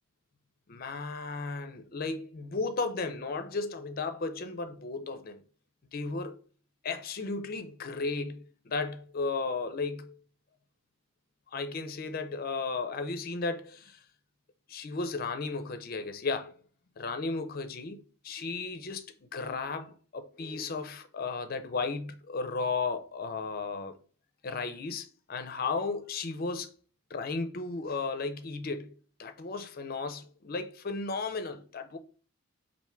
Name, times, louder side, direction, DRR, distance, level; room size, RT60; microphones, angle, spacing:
voice 1, 0.7-5.4 5.9-6.4 6.8-10.2 11.5-14.0 14.7-16.5 17.0-24.0 24.4-26.7 27.1-28.9 29.2-32.0, left 4 dB, 45° left, 0.5 m, -34 dB
3.4 x 2.6 x 4.3 m
head